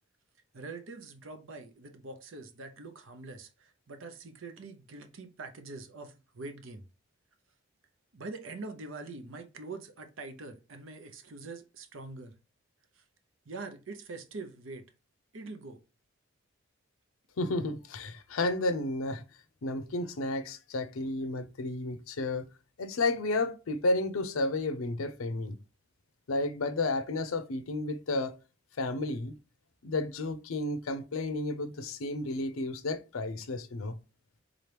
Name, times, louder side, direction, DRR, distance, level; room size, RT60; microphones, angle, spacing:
voice 1, 0.5-6.8 8.1-12.3 13.5-14.8 15.3-15.8, right 3 dB, 75° right, 0.7 m, -44 dB
voice 2, 17.4-19.2 19.6-22.5 22.8-25.6 26.3-28.3 28.8-29.3 29.8-34.0, left 2 dB, 85° left, 0.6 m, -32 dB
3.8 x 2.9 x 3.3 m
head